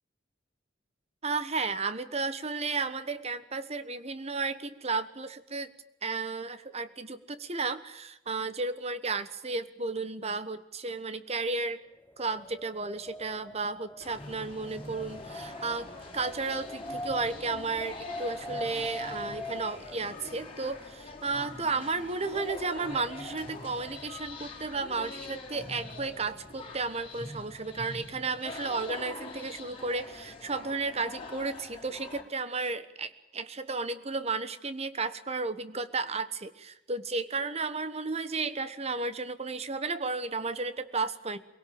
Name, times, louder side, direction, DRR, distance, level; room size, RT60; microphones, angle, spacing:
voice 1, 1.2-5.7 6.0-11.8 12.2-15.9 16.1-41.4, right 4 dB, 35° right, 12 dB, 1.3 m, -33 dB
Wind, 12.0-20.0, equal, 10° left, 0.8 m, -41 dB
sound 1, 14.0-32.2, left 3 dB, 30° left, 4.0 m, -44 dB
24.0 x 17.5 x 8.8 m, 0.91 s
head